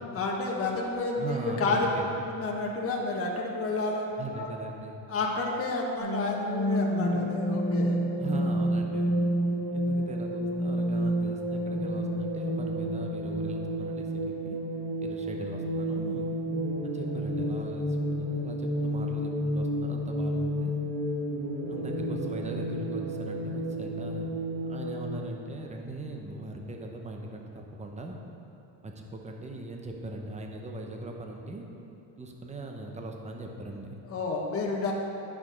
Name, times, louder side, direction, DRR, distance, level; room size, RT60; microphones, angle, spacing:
voice 1, 0.1-1.9 2.3-4.5 5.1-8.0 34.1-34.9, left 3 dB, 30° left, -1 dB, 1.3 m, -30 dB
voice 2, 1.1-2.2 4.2-5.1 8.2-9.2 9.7-14.6 15.0-16.3 16.8-20.7 21.7-24.3 24.7-28.2 28.8-31.7 32.2-34.0, right 2 dB, 15° right, 2 dB, 0.9 m, -40 dB
sound 1, 6.0-25.2, equal, 70° right, 2.0 m, -30 dB
9.9 x 6.3 x 5.2 m, 2.8 s
cardioid pair, 120°, 47 cm